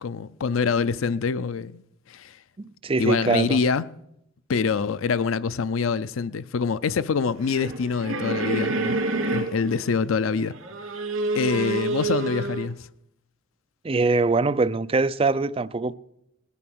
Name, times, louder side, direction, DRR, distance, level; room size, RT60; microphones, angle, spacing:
voice 1, 0.0-1.8 2.1-2.4 3.0-3.8 4.5-9.0 9.3-10.5 11.3-12.8, left 5 dB, 85° left, 0.5 m, -25 dB
voice 2, 2.6-3.6 13.8-15.9, right 3 dB, 30° right, 0.5 m, -23 dB
sound 1, 7.4-9.9 10.4-12.7, right 2 dB, 85° right, 2.6 m, -28 dB
19.5 x 9.8 x 6.1 m
head